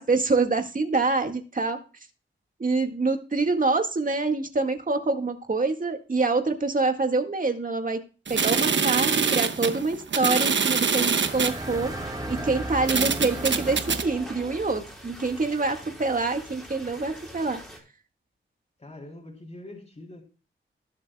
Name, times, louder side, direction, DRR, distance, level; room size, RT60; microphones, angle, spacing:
voice 1, 0.0-1.8 2.6-8.0 8.3-11.9 12.3-17.6, right 3 dB, 40° right, 5 dB, 1.8 m, -26 dB
sound 1, 8.3-11.6 12.3-12.4 12.9-14.0, right 5 dB, 60° right, 1.1 m, -25 dB
sound 2, 11.1-14.9, right 1 dB, 15° right, 1.6 m, -36 dB
sound 3, 11.2-17.8, right 1 dB, ahead, 4.4 m, -44 dB
voice 2, 18.8-20.2, left 1 dB, 30° left, -1 dB, 3.4 m, -43 dB
20.0 x 7.5 x 2.3 m, 0.35 s
wide cardioid pair, 120°, 21 cm